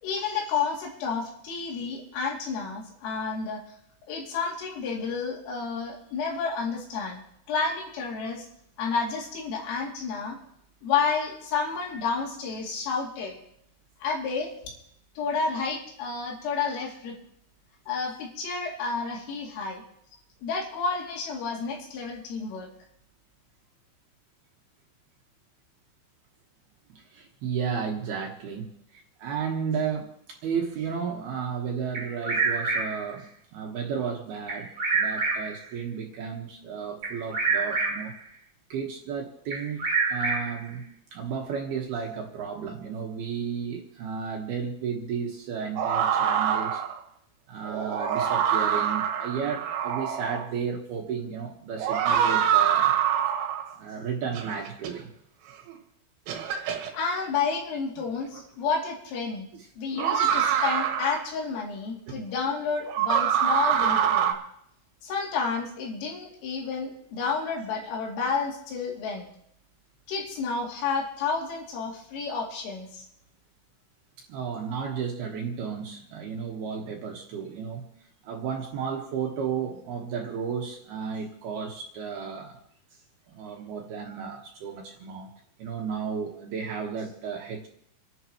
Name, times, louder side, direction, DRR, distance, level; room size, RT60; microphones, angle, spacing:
voice 1, 0.0-3.6 4.1-7.2 7.5-8.5 8.8-10.4 10.8-13.4 14.0-14.5 15.2-17.2 17.9-19.8 20.4-22.7 56.9-59.5 59.8-64.3 65.0-69.3 70.1-73.1, left 5 dB, 80° left, -1 dB, 5.3 m, -30 dB
voice 2, 27.0-38.1 38.7-39.8 40.1-40.8 41.1-46.8 47.5-52.9 53.8-55.1 59.5-59.7 62.1-62.2 74.3-77.9 78.2-82.6 83.3-85.3 85.6-87.7, right 6 dB, 65° right, 1 dB, 2.8 m, -33 dB
Bird vocalization bird call bird song, 31.9-33.1 34.5-35.7 37.0-38.2 39.5-40.7, right 4 dB, 35° right, 2.6 m, -27 dB
sound 1, 45.8-47.0 47.7-50.5 51.8-53.7 54.3-54.9 55.7-55.8 56.3-56.9 58.4-58.5 60.0-61.2 62.9-64.3, right 9 dB, 85° right, 4.2 m, -25 dB
28.5 x 11.5 x 3.0 m, 0.73 s
omnidirectional pair, 5.8 m